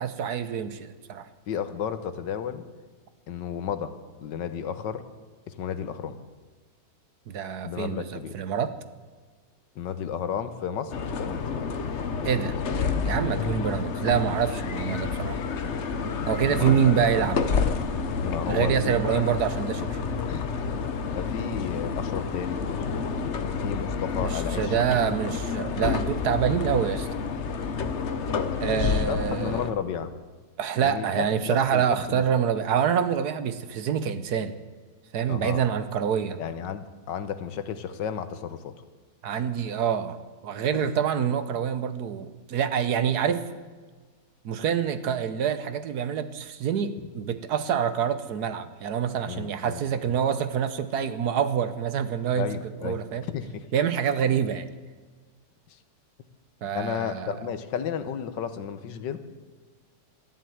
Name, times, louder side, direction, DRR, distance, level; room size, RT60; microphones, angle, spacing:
voice 1, 0.0-1.3 7.3-8.7 12.2-12.5 13.0-15.4 16.3-17.4 18.5-20.1 24.2-27.1 28.6-29.6 30.6-34.6 35.1-36.4 39.2-43.5 44.4-52.5 52.8-53.2 53.7-54.7 56.6-57.4, right 8 dB, 65° right, 12 dB, 1.3 m, -26 dB
voice 2, 1.5-2.6 3.3-3.9 4.2-5.1 5.5-6.2 7.6-8.4 9.7-11.4 16.5-17.3 18.2-19.2 20.2-20.5 21.1-22.6 23.6-24.7 28.5-30.1 30.8-32.4 35.3-35.6 36.4-38.7 40.7-40.8 49.3-49.8 52.3-53.7 56.7-59.2, left 8 dB, 80° left, 11 dB, 1.6 m, -33 dB
sound 1, 10.9-29.7, left 5 dB, 45° left, 1.1 m, -29 dB
13.0 x 11.0 x 9.3 m, 1.4 s
omnidirectional pair, 1.9 m